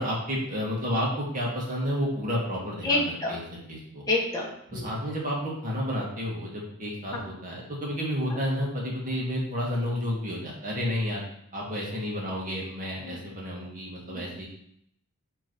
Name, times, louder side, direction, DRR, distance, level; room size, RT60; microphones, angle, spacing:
voice 1, 0.0-3.4 3.7-4.0 4.7-11.2 11.5-14.5, equal, 40° right, -3 dB, 2.1 m, -31 dB
voice 2, 2.8-3.4 4.1-4.9 7.1-7.2 13.0-13.2 14.1-14.2, left 2 dB, 15° left, -4 dB, 1.6 m, -28 dB
7.8 x 3.8 x 4.6 m, 0.72 s
head